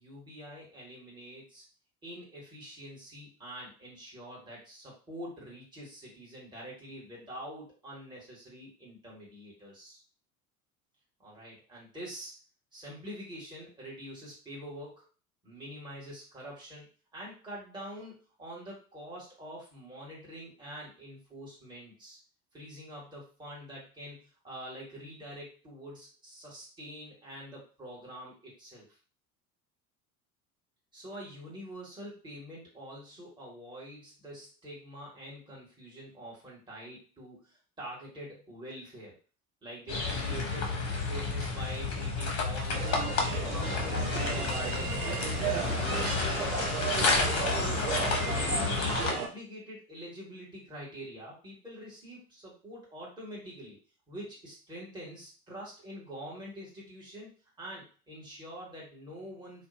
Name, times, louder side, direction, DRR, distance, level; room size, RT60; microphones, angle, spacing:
voice 1, 0.0-1.6 2.0-10.0 11.2-12.3 12.7-15.1 15.4-16.9 17.1-18.1 18.4-22.2 22.5-28.9 30.9-39.1 39.6-46.2 47.2-53.8 54.1-59.7, equal, 10° right, -6 dB, 1.3 m, -45 dB
sound 1, 39.9-49.1, left 3 dB, 35° left, 0.8 m, -31 dB
sound 2, 42.7-49.3, right 4 dB, 75° right, 0.6 m, -34 dB
2.5 x 2.1 x 2.7 m, 0.38 s
figure-of-eight pair, 65°, 44 cm